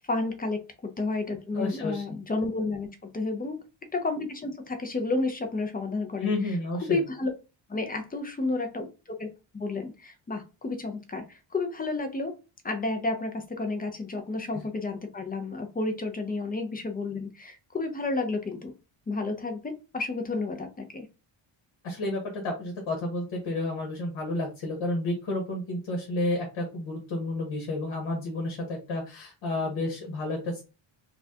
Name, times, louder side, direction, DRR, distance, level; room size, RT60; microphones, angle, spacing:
voice 1, 0.1-3.6 3.9-6.3 6.9-7.3 7.7-8.9 9.2-9.3 9.5-12.4 12.6-18.7 19.1-21.1, left 3 dB, 20° left, 5 dB, 0.4 m, -31 dB
voice 2, 1.5-2.0 6.2-7.0 14.5-14.6 21.8-30.6, left 2 dB, 70° left, 0 dB, 1.3 m, -31 dB
4.4 x 2.3 x 2.7 m, 0.31 s
wide cardioid pair, 165°, 47 cm